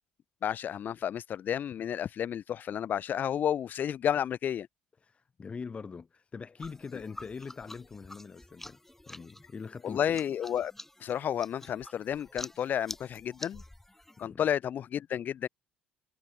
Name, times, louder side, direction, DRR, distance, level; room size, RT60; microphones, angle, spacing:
voice 1, 0.4-4.7 9.8-10.7 11.0-13.6 14.2-15.5, left 9 dB, 50° left, 0.9 m, -31 dB
voice 2, 5.0-8.8 9.1-10.2 14.2-14.5, left 5 dB, 30° left, 4.4 m, -43 dB
sound 1, 6.6-14.3, left 1 dB, 5° left, 3.5 m, -48 dB
supercardioid pair, 90°, 4 cm